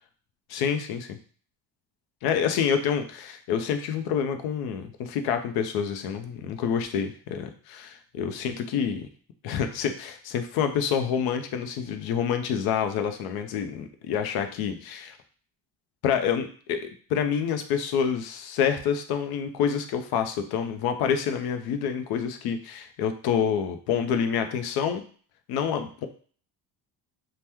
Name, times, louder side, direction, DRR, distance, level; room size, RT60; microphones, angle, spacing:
voice 1, 0.5-1.2 2.2-9.1 9.4-15.2 16.0-25.0 25.5-26.1, left 7 dB, 70° left, 7 dB, 0.5 m, -27 dB
2.9 x 2.1 x 3.4 m, 0.44 s
cardioid pair, 170°, 39 cm